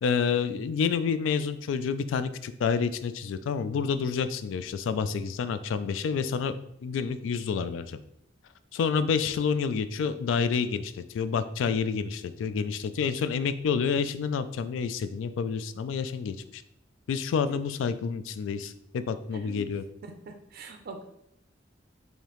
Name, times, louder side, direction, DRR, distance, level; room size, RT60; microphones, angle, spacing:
voice 1, 0.0-6.5 6.8-8.0 8.7-16.6 17.1-19.8, left 6 dB, 80° left, 13 dB, 0.3 m, -29 dB
voice 2, 19.3-19.6 20.0-21.0, right 2 dB, 50° right, 5 dB, 0.4 m, -43 dB
4.9 x 2.7 x 3.0 m, 0.76 s
head